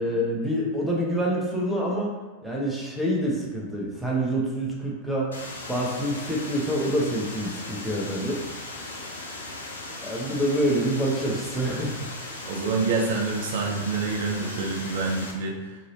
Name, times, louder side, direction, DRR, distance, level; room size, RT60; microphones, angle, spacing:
voice 1, 0.0-2.1 2.4-5.3 5.7-8.4 10.0-12.1, equal, ahead, -4 dB, 0.7 m, -26 dB
sound 1, 5.3-15.3, left 2 dB, 70° left, 0.5 m, -38 dB
voice 2, 12.4-15.6, right 4 dB, 55° right, 0 dB, 0.4 m, -27 dB
2.8 x 2.8 x 2.7 m, 1.2 s
figure-of-eight pair, 90°, 0 cm